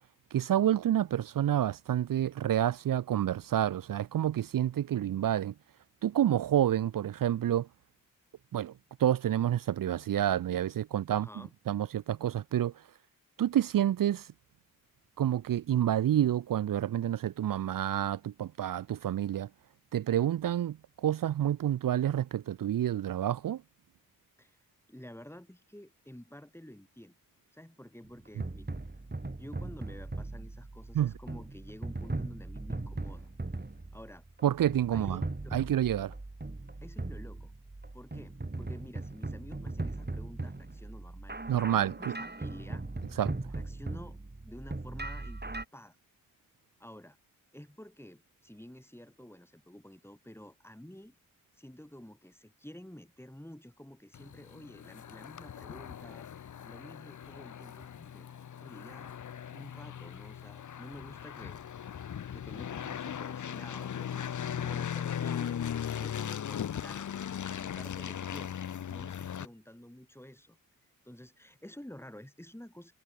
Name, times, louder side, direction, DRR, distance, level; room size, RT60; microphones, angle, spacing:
voice 1, 0.3-5.5 6.0-7.7 8.5-8.7 9.0-11.3 11.7-12.7 13.4-14.3 15.2-19.5 19.9-23.6 30.9-31.1 34.4-35.2 35.5-36.1 41.5-42.1 43.2-43.3, right 11 dB, 75° right, 0.5 m, -28 dB
voice 2, 11.1-11.5 24.4-24.6 24.9-27.1 27.5-28.7 29.4-33.3 33.9-34.2 34.9-35.5 36.8-37.5 37.9-42.8 43.5-44.2 44.4-46.0 46.8-47.2 47.5-51.2 51.6-56.3 56.6-58.3 58.6-59.1 59.5-61.6 62.3-67.1 67.5-68.5 68.9-70.6 71.0-72.9, left 1 dB, 5° left, 4.9 m, -50 dB
sound 1, 28.0-45.6, right 2 dB, 30° right, 5.8 m, -39 dB
sound 2, 54.1-69.5, left 9 dB, 60° left, 0.7 m, -38 dB
cardioid pair, 50°, 33 cm